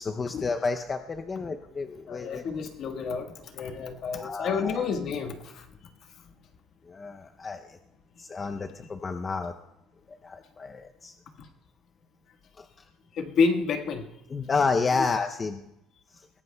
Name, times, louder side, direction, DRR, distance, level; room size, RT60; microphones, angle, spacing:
voice 1, 0.0-2.4 4.1-4.9 6.9-7.8 8.2-9.5 10.1-11.1 12.6-12.7 14.3-15.7 16.1-16.2, left 4 dB, 25° left, 5 dB, 0.5 m, -30 dB
voice 2, 2.1-5.9 11.4-11.5 13.1-14.0, left 5 dB, 50° left, 5 dB, 1.4 m, -29 dB
21.5 x 17.5 x 2.2 m, 0.89 s
cardioid pair, 135°, 0 cm